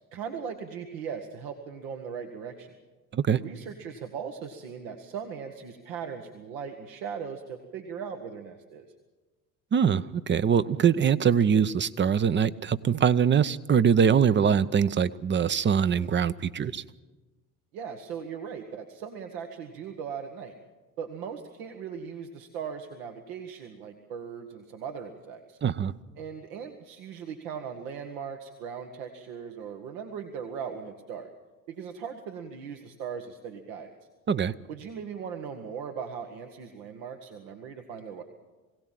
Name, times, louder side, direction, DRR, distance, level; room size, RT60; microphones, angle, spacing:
voice 1, 0.1-2.7 3.3-8.9 17.7-20.6 21.0-25.6 26.2-31.3 31.7-33.9 34.7-38.2, right 7 dB, 70° right, 5 dB, 1.6 m, -39 dB
voice 2, 9.7-16.8 25.6-25.9 34.3-34.5, right 7 dB, 25° right, 15 dB, 0.7 m, -23 dB
22.0 x 17.0 x 7.6 m, 1.2 s
hypercardioid pair, 70°, 42 cm